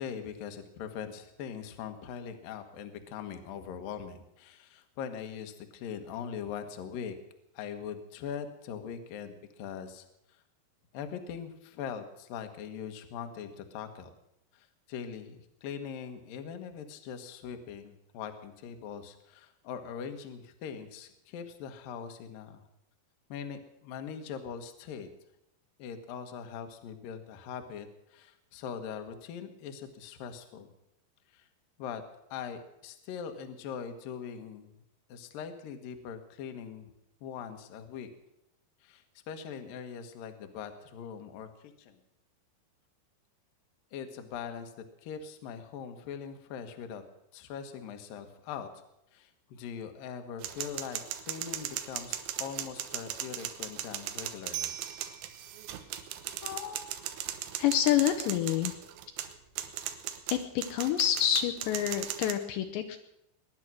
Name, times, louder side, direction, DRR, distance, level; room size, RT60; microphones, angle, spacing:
voice 1, 0.0-7.2 7.5-10.1 10.9-14.1 14.5-22.6 23.3-25.1 25.8-30.7 31.3-31.5 31.8-32.0 32.3-34.8 35.1-36.9 37.2-38.1 38.8-42.0 43.9-44.7 45.0-47.0 47.3-48.8 49.1-54.7, left 7 dB, 65° left, 7 dB, 2.5 m, -41 dB
sound 1, 50.4-62.3, right 11 dB, 80° right, 3.4 m, -38 dB
voice 2, 56.4-56.8 57.6-58.7 60.3-63.0, left 11 dB, 80° left, 6 dB, 2.9 m, -28 dB
22.0 x 10.5 x 6.2 m, 0.83 s
omnidirectional pair, 5.4 m